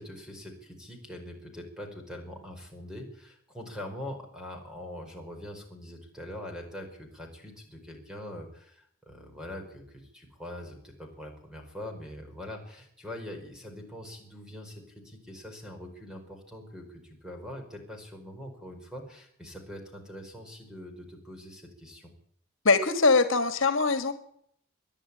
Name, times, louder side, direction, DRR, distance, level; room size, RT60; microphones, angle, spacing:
voice 1, 0.0-22.1, left 1 dB, 5° right, 3 dB, 5.1 m, -43 dB
voice 2, 22.6-24.1, left 4 dB, 70° left, 10 dB, 1.8 m, -22 dB
24.5 x 11.0 x 9.9 m, 0.69 s
head